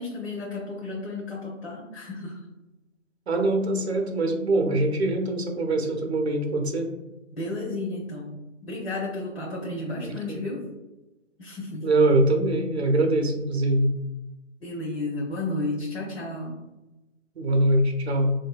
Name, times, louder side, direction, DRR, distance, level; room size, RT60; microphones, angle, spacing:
voice 1, 0.0-2.4 7.3-8.3 8.6-10.6 11.4-11.9 14.6-16.6, left 2 dB, 50° left, -3 dB, 0.8 m, -32 dB
voice 2, 3.3-6.9 10.0-10.4 11.8-13.9 17.4-18.3, right 2 dB, 55° right, 3 dB, 0.7 m, -23 dB
3.9 x 2.6 x 2.3 m, 1.0 s
figure-of-eight pair, 155°, 39 cm